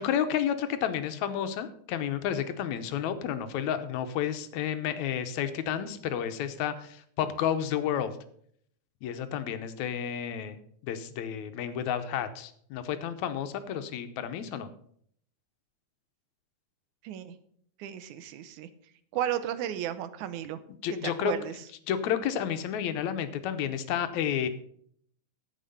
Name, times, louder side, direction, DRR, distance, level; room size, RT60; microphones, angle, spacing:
voice 1, 0.0-8.1 9.0-10.6 10.8-14.7 20.7-21.3 21.9-24.5, left 9 dB, 80° left, 10 dB, 2.1 m, -31 dB
voice 2, 17.0-17.4 17.8-18.7 19.1-20.6 21.0-21.5, right 10 dB, 85° right, 12 dB, 2.2 m, -33 dB
10.0 x 7.7 x 5.5 m, 0.64 s
omnidirectional pair, 3.4 m